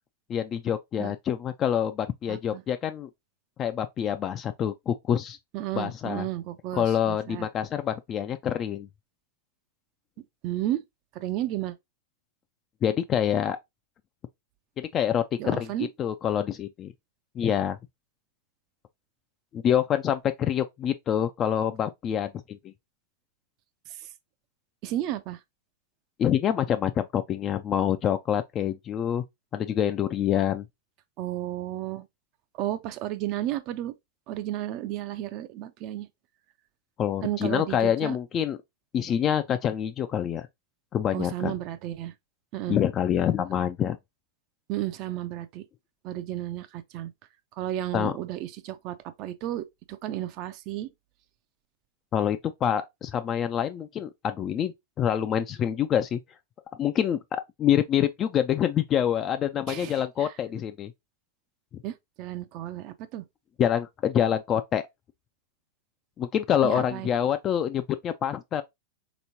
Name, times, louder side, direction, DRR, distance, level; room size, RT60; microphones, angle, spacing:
voice 1, 0.3-3.1 3.6-5.4 5.8-6.3 6.7-8.9 12.8-13.6 14.8-16.9 17.4-17.8 19.5-22.6 26.2-29.2 29.5-30.6 37.0-38.6 38.9-40.5 40.9-41.5 42.7-44.0 47.9-48.1 52.1-56.2 56.8-60.9 63.6-64.9 66.2-68.6, left 9 dB, 30° left, 0.3 m, -26 dB
voice 2, 2.3-2.6 5.5-7.5 10.4-10.8 11.2-11.7 15.4-15.9 24.8-25.4 31.2-32.1 32.6-33.9 34.3-36.1 37.2-38.2 41.1-42.1 42.5-42.8 44.7-45.6 46.0-47.1 47.6-50.9 59.7-60.3 61.8-63.2 66.6-67.1, right 13 dB, 45° right, 0.4 m, -33 dB
3.4 x 3.0 x 2.6 m
hypercardioid pair, 115°, 0 cm